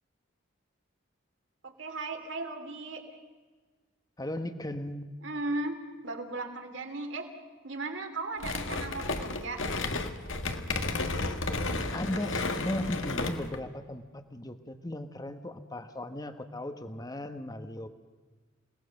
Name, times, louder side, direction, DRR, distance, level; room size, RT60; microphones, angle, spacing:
voice 1, 1.6-3.0 5.2-7.3 7.6-9.6, right 2 dB, 65° right, 5 dB, 2.9 m, -36 dB
voice 2, 4.2-5.1 11.9-17.9, left 1 dB, 20° left, 9 dB, 1.2 m, -36 dB
sound 1, 8.4-13.6, left 3 dB, 70° left, 1.7 m, -32 dB
29.0 x 18.5 x 6.5 m, 1.4 s
head